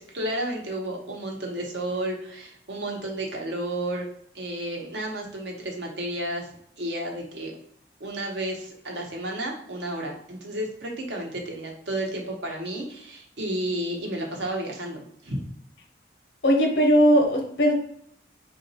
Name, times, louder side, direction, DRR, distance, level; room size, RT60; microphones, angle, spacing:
voice 1, 0.0-4.1 4.3-6.5 6.8-7.5 8.0-15.4, right 1 dB, 75° right, 0 dB, 0.9 m, -32 dB
voice 2, 16.4-17.7, equal, 75° left, 2 dB, 0.8 m, -19 dB
3.8 x 2.5 x 4.0 m, 0.68 s
head